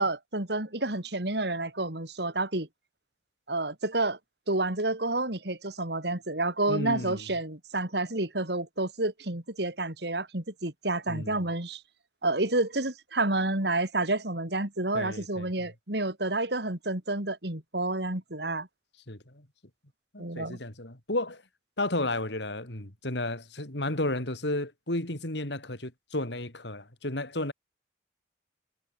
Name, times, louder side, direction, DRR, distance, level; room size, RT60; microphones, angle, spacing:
voice 1, 0.0-2.7 3.5-4.2 4.5-11.8 12.2-18.7 20.2-20.6, right 2 dB, 65° right, 3.5 m, -29 dB
voice 2, 6.7-7.2 11.1-11.4 14.9-15.5 19.1-19.5 20.1-21.4 21.8-27.5, left 1 dB, 75° left, 3.9 m, -33 dB
head